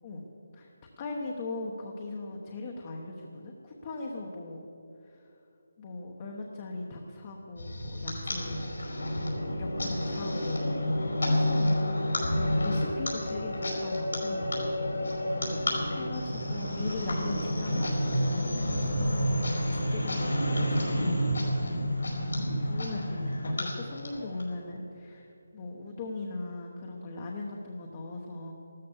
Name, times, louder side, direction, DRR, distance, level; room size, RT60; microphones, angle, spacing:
voice 1, 1.0-4.6 5.1-5.2 5.8-8.6 9.0-9.3 9.6-14.6 15.9-21.8 22.3-28.5, left 2 dB, 20° left, 0 dB, 1.0 m, -39 dB
sound 1, 7.6-24.4, equal, 80° left, 4.9 m, -29 dB
13.5 x 13.5 x 7.2 m, 2.7 s
hypercardioid pair, 175°, 0 cm